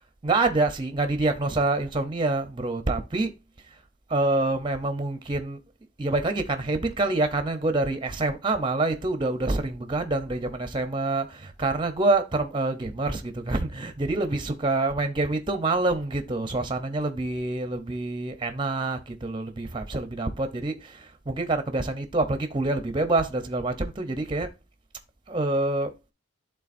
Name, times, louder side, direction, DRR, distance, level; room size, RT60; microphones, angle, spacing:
voice 1, 0.2-3.3 4.1-5.6 6.0-24.5 25.3-25.9, right 2 dB, 25° right, 0.7 m, -26 dB
11.0 x 3.7 x 2.5 m
head